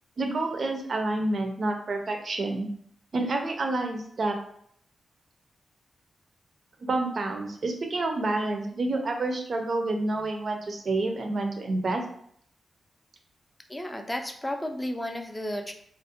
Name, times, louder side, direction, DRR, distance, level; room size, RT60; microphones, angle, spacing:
voice 1, 0.2-2.7 3.1-4.4 6.8-12.0, right 2 dB, 55° right, 3 dB, 0.4 m, -28 dB
voice 2, 13.7-15.7, left 1 dB, 10° left, 4 dB, 0.3 m, -33 dB
2.4 x 2.0 x 2.6 m, 0.65 s
wide cardioid pair, 100°, 0 cm